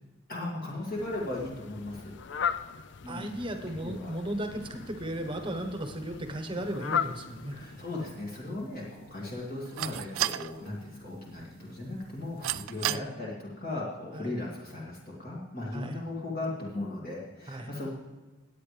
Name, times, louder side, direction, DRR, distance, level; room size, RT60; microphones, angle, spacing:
voice 1, 0.3-2.1 3.0-3.4 3.8-4.1 7.5-17.9, left 2 dB, 45° left, -4 dB, 2.3 m, -37 dB
Fowl, 0.8-8.2, left 7 dB, 60° left, 0.5 m, -38 dB
voice 2, 3.1-7.6 12.9-13.1 14.1-14.4 15.7-16.0 17.5-17.7, right 1 dB, 25° right, 6 dB, 1.1 m, -36 dB
sound 1, 6.6-13.0, right 13 dB, 80° right, 0.3 m, -38 dB
19.5 x 8.5 x 3.3 m, 1.2 s
head